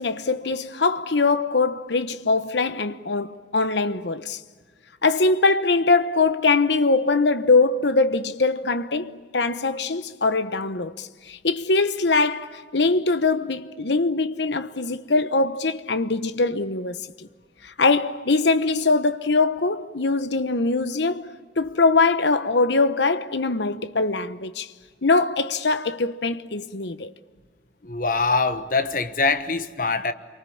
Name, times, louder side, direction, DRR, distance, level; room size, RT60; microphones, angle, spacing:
voice 1, 0.0-4.4 5.0-17.3 17.6-24.7 25.0-27.1, left 3 dB, 75° left, 1.0 m, -22 dB
voice 2, 27.8-30.1, left 3 dB, 50° left, 1.2 m, -23 dB
27.5 x 24.0 x 8.7 m
head